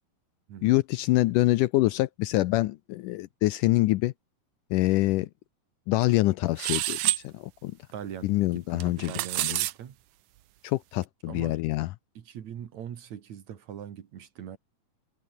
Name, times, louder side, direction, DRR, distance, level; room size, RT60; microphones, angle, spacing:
voice 1, 0.6-4.1 4.7-5.3 5.9-7.0 7.2-7.8 8.2-9.1 9.4-9.6 10.6-11.9, left 18 dB, 80° left, 2.0 m, -25 dB
sound 1, 6.6-7.2 8.8-9.7, right 16 dB, 75° right, 2.2 m, -27 dB
voice 2, 7.9-10.0 11.2-11.6 12.1-14.6, right 9 dB, 55° right, 2.8 m, -41 dB
omnidirectional pair, 4.1 m